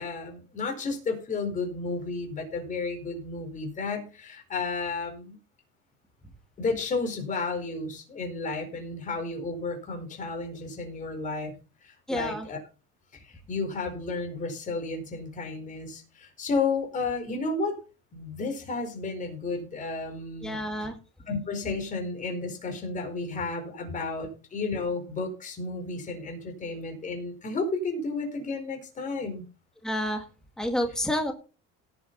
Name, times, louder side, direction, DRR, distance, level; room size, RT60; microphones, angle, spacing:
voice 1, 0.0-5.4 6.6-11.5 11.8-12.6 13.1-17.8 18.1-20.6 21.3-29.4, left 3 dB, 25° left, 3 dB, 4.6 m, -32 dB
voice 2, 12.1-12.5 20.4-21.0 29.8-30.2 30.6-31.3, left 1 dB, ahead, 3 dB, 1.9 m, -29 dB
17.5 x 7.3 x 4.2 m, 0.34 s
cardioid pair, 160°, 30 cm